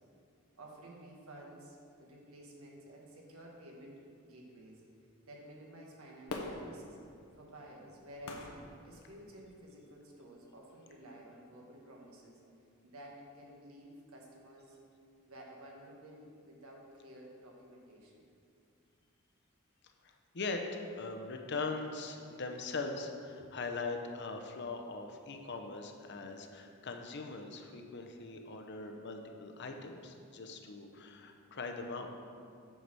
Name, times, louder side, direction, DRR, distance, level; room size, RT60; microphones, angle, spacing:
voice 1, 0.6-4.8 5.3-7.0 7.4-8.5 8.8-12.4 12.8-14.8 15.3-18.3 23.4-23.5 24.6-24.7, right 1 dB, 85° right, -1 dB, 1.4 m, -53 dB
Fireworks, 6.3-9.6 10.2-10.3, left 2 dB, 85° left, 1.0 m, -45 dB
voice 2, 20.0-32.1, left 3 dB, 55° left, 4 dB, 0.7 m, -41 dB
7.9 x 4.8 x 6.1 m, 2.4 s
head